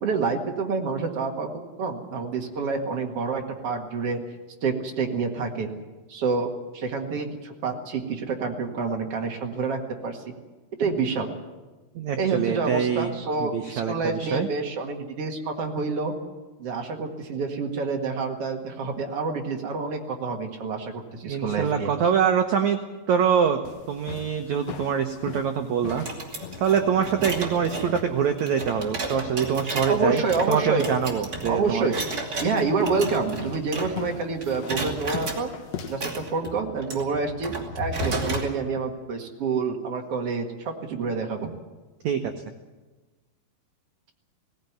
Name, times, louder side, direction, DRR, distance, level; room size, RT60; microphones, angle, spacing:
voice 1, 0.0-1.5 1.8-4.2 4.6-5.7 6.1-6.5 6.7-10.3 10.8-11.3 12.2-16.1 16.6-21.9 29.9-30.9 31.5-31.9 32.4-35.5 35.9-41.5, right 4 dB, 50° right, 2 dB, 2.1 m, -28 dB
voice 2, 11.9-13.1 13.4-14.5 21.2-22.8 23.1-23.6 23.9-26.1 26.6-31.9 42.0-42.3, right 7 dB, 85° right, 6 dB, 1.6 m, -24 dB
sound 1, 23.6-36.1, left 7 dB, 70° left, 1.6 m, -42 dB
sound 2, 25.9-34.1 34.4-35.4 35.9-38.5, right 2 dB, 25° right, 2.4 m, -33 dB
18.5 x 16.0 x 9.4 m, 1.2 s
omnidirectional pair, 4.7 m